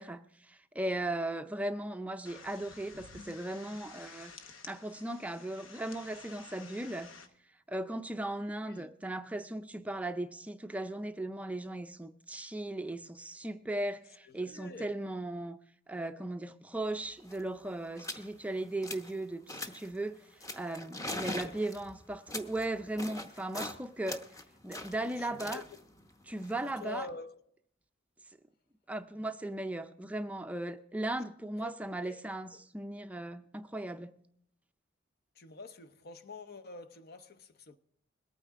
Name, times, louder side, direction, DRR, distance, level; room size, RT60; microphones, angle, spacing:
voice 1, 0.0-4.3 4.7-7.1 7.7-15.6 15.9-20.2 20.5-24.2 24.6-25.6 26.3-27.1 28.9-34.1, right 1 dB, 5° right, 0.4 m, -37 dB
sound 1, 2.3-7.3, left 4 dB, 90° left, 1.0 m, -52 dB
voice 2, 14.2-14.9 21.0-21.6 25.2-25.8 26.8-27.4 31.6-31.7 32.1-32.2 32.5-32.7 35.4-37.8, left 3 dB, 55° left, 0.7 m, -47 dB
sound 2, 16.9-17.0 17.2-17.5 18.0-18.3 18.6-19.2 19.5-19.9 20.4-23.8 24.1-27.1, left 1 dB, 15° left, 0.9 m, -42 dB
21.5 x 9.1 x 3.6 m
head